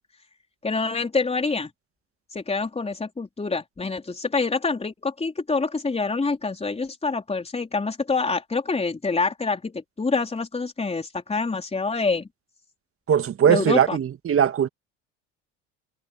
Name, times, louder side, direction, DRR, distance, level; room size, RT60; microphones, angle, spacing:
voice 1, 0.6-1.7 2.3-12.3 13.5-14.0, left 4 dB, 15° left, 3.8 m, -26 dB
voice 2, 13.1-14.7, right 8 dB, 35° right, 2.0 m, -20 dB
hypercardioid pair, 75°, 36 cm